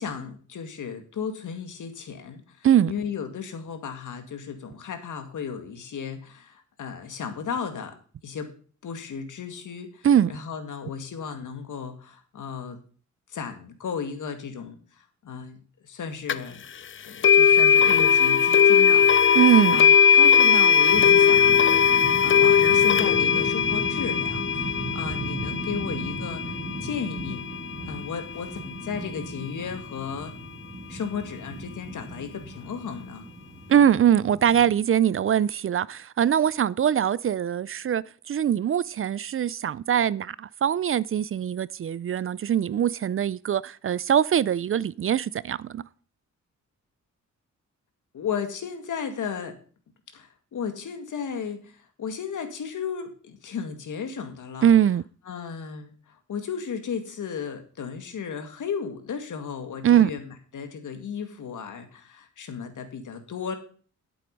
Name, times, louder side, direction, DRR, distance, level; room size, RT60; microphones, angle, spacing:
voice 1, 0.0-2.4 2.9-8.0 8.2-8.5 8.8-12.8 13.3-14.8 15.2-15.6 15.8-16.6 17.0-19.1 19.7-21.5 22.2-26.5 26.8-27.4 27.8-30.3 30.9-33.2 48.1-49.6 50.1-51.7 52.0-54.7 55.3-55.9 56.3-60.2 60.5-63.6, left 6 dB, 80° left, 2.1 m, -34 dB
sound 1, 16.3-16.4 17.2-28.2, left 7 dB, 40° left, 0.5 m, -19 dB
voice 2, 19.3-19.8 33.7-45.8 54.6-55.0 59.8-60.1, right 9 dB, 45° right, 0.4 m, -22 dB
sound 2, 20.9-34.7, right 2 dB, 25° right, 6.1 m, -37 dB
12.0 x 7.7 x 5.3 m
wide cardioid pair, 125°, 30 cm